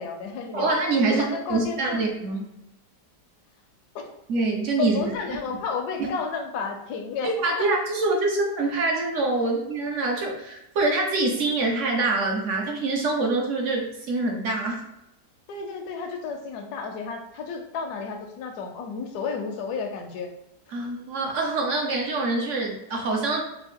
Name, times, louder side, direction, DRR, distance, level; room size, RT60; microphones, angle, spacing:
voice 1, 0.0-0.7 1.0-2.0 3.9-4.1 4.8-7.7 9.3-9.5 15.5-20.3, left 5 dB, 75° left, 3 dB, 1.1 m, -32 dB
voice 2, 0.5-2.5 4.3-5.1 7.2-14.8 20.7-23.4, right 3 dB, 60° right, 0 dB, 0.9 m, -25 dB
4.3 x 2.4 x 3.5 m, 0.85 s
omnidirectional pair, 1.8 m